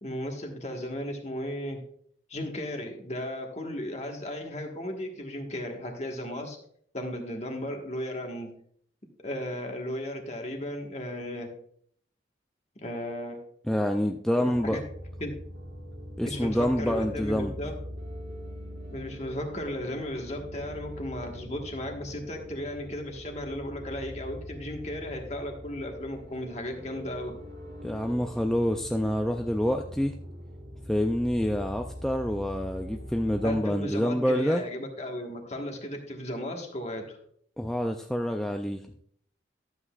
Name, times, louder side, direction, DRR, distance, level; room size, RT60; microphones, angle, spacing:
voice 1, 0.0-1.8 2.3-6.6 6.9-8.5 9.2-11.5 12.8-13.4 14.4-14.8 15.2-15.3 16.2-17.8 18.9-27.4 33.4-37.2, left 1 dB, 35° left, 2 dB, 1.4 m, -35 dB
voice 2, 13.7-14.8 16.2-17.5 27.8-30.1 30.9-34.6 37.6-38.8, equal, 5° left, 4 dB, 0.3 m, -27 dB
sound 1, 14.5-33.6, equal, 60° right, 1.5 m, -42 dB
12.5 x 8.1 x 2.4 m, 0.64 s
head